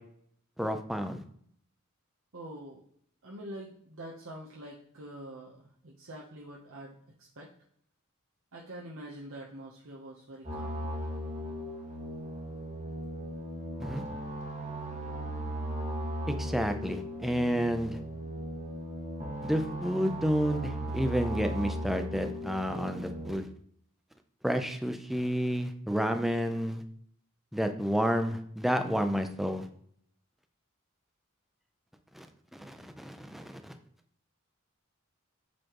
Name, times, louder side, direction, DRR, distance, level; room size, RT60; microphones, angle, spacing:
voice 1, 0.6-1.2 13.8-14.0 16.4-18.0 19.4-23.5 24.4-26.8 27.5-29.7 32.2-32.3 32.5-33.6, equal, ahead, 6 dB, 0.5 m, -30 dB
voice 2, 2.3-2.8 3.2-7.5 8.5-10.9, right 1 dB, 65° right, -3 dB, 0.9 m, -45 dB
sound 1, 10.4-23.3, equal, 30° right, 1.6 m, -37 dB
7.8 x 4.3 x 3.0 m, 0.65 s
head